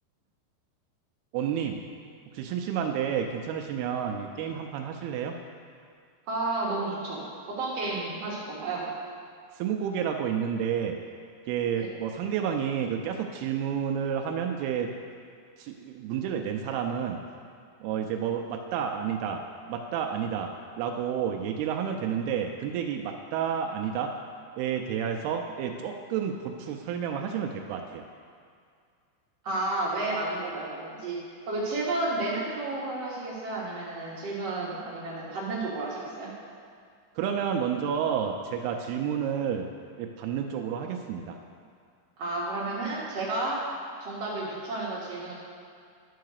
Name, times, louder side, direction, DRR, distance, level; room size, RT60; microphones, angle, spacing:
voice 1, 1.3-1.8 2.3-5.4 9.6-11.0 11.5-14.9 15.6-17.2 17.8-19.4 19.7-20.5 20.8-24.1 24.6-28.0 37.2-39.7 40.0-41.4, right 8 dB, 90° right, 3 dB, 2.2 m, -30 dB
voice 2, 6.3-8.9 11.7-11.9 29.4-31.2 31.5-36.3 42.2-43.6 44.0-45.3, right 2 dB, 70° right, -6 dB, 1.5 m, -31 dB
11.5 x 4.7 x 6.5 m, 2.2 s
omnidirectional pair, 5.2 m